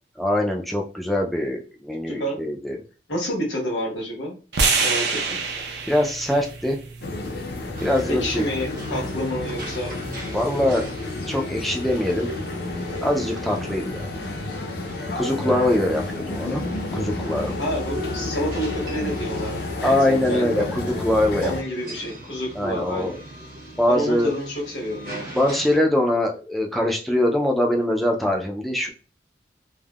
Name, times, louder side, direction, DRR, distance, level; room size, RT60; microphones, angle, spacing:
voice 1, 0.2-2.8 5.9-6.8 7.8-8.4 10.3-11.0 11.3-12.3 13.0-14.0 15.1-16.6 16.9-17.5 19.8-21.5 22.5-23.2 23.8-24.3 25.3-28.9, left 1 dB, ahead, 0 dB, 0.3 m, -23 dB
voice 2, 2.1-2.4 3.1-4.3 4.8-5.4 8.1-9.9 17.6-20.7 21.4-23.2 23.9-25.3, equal, 90° left, -2 dB, 1.2 m, -29 dB
Electric Hit, 4.5-8.7, right 4 dB, 70° right, 0.6 m, -27 dB
sound 1, 7.0-21.6, left 2 dB, 60° left, 0.5 m, -30 dB
sound 2, 7.8-25.8, right 1 dB, 50° right, 1.0 m, -40 dB
3.4 x 2.0 x 2.3 m, 0.36 s
head